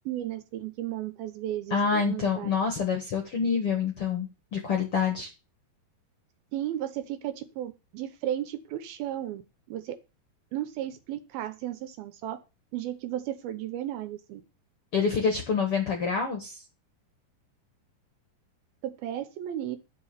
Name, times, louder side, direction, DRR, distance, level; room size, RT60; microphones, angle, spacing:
voice 1, 0.1-2.6 6.5-9.4 9.7-10.0 10.5-12.4 12.7-14.4 18.8-19.8, right 12 dB, 75° right, 12 dB, 2.5 m, -34 dB
voice 2, 1.7-5.3 14.9-16.6, left 5 dB, 60° left, 5 dB, 1.6 m, -27 dB
11.5 x 6.0 x 6.8 m, 0.29 s
omnidirectional pair, 4.8 m